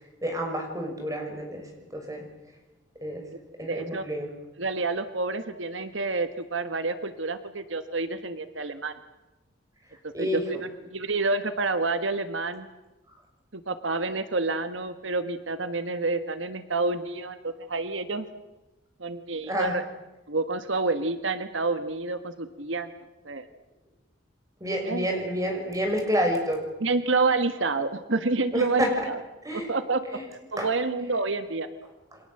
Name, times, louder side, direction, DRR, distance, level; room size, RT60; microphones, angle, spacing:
voice 1, 0.2-2.3 3.0-3.3 3.6-4.3 10.1-10.4 19.5-19.8 24.6-26.7 28.5-29.1 29.4-29.7 30.1-30.3 30.6-30.7 32.1-32.2, equal, 15° right, 3 dB, 6.4 m, -29 dB
voice 2, 3.6-4.0 4.6-8.9 10.0-12.7 13.5-18.3 19.0-19.8 20.3-22.9 23.2-23.5 24.8-25.1 26.8-29.2 29.5-30.0 30.5-31.7, right 3 dB, 75° right, 10 dB, 1.5 m, -28 dB
29.5 x 24.5 x 7.9 m, 1.0 s
head